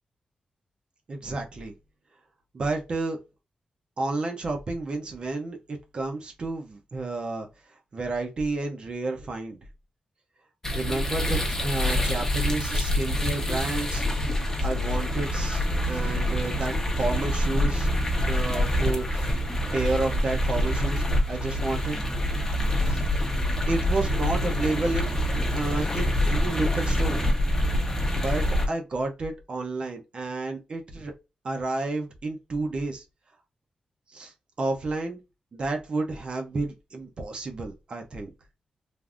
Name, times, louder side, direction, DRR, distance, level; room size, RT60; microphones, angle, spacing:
voice 1, 1.1-1.7 2.5-3.2 4.0-9.6 10.7-14.0 14.6-17.9 18.3-19.3 19.7-22.0 22.8-23.0 23.7-25.1 25.5-27.3 28.2-31.1 31.4-33.0 34.1-35.2 35.5-38.3, right 2 dB, 45° right, 0.6 m, -31 dB
sound 1, 10.6-28.7, left 1 dB, 20° left, 0.8 m, -26 dB
3.4 x 2.6 x 2.4 m
wide cardioid pair, 165°, 2 cm